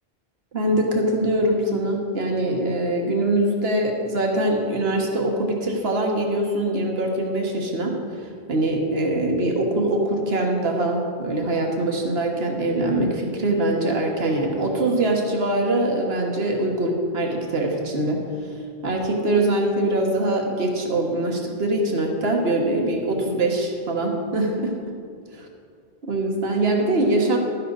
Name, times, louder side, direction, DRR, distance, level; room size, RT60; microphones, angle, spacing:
voice 1, 0.5-7.9 8.5-18.2 18.8-24.7 26.1-27.4, right 1 dB, 70° right, 1 dB, 1.6 m, -23 dB
12.5 x 10.5 x 4.0 m, 2.3 s
omnidirectional pair, 1.1 m